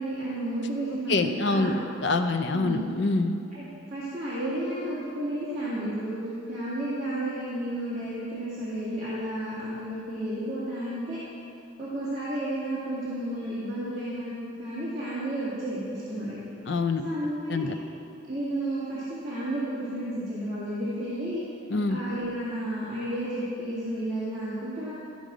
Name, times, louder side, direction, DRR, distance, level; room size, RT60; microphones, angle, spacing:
voice 1, 0.0-1.8 2.5-2.8 3.5-6.2 6.5-11.2 11.8-14.3 14.6-16.4 17.0-17.8 18.3-21.4 21.9-24.9, right 1 dB, 30° right, -13 dB, 2.0 m, -32 dB
voice 2, 1.1-3.3 16.7-17.0 17.5-17.7 21.7-22.0, left 3 dB, 60° left, 7 dB, 0.6 m, -26 dB
13.0 x 5.2 x 5.0 m, 2.7 s
head